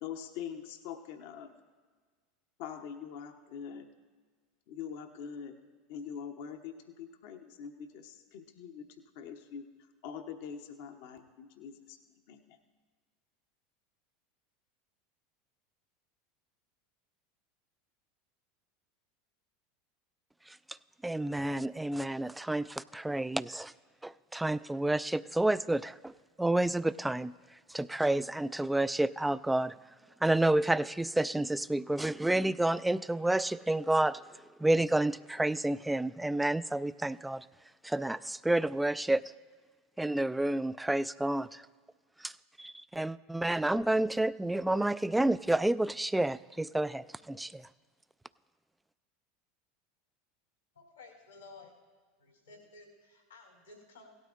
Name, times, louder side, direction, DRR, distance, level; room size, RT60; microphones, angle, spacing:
voice 1, 0.0-1.5 2.6-3.9 4.7-5.6 5.9-8.9 9.1-9.7 10.0-12.0 12.3-12.6, left 7 dB, 65° left, 6 dB, 0.9 m, -43 dB
voice 2, 21.0-23.7 24.0-26.1 26.4-27.3 27.7-29.7 30.2-34.2 34.6-37.4 37.8-39.2 40.0-41.6 42.2-42.3 42.6-47.6, right 1 dB, 5° right, 16 dB, 0.3 m, -29 dB
voice 3, 50.7-51.7 52.2-54.1, left 3 dB, 90° left, -2 dB, 3.2 m, -54 dB
17.5 x 12.5 x 2.5 m, 1.5 s
hypercardioid pair, 80°, 0 cm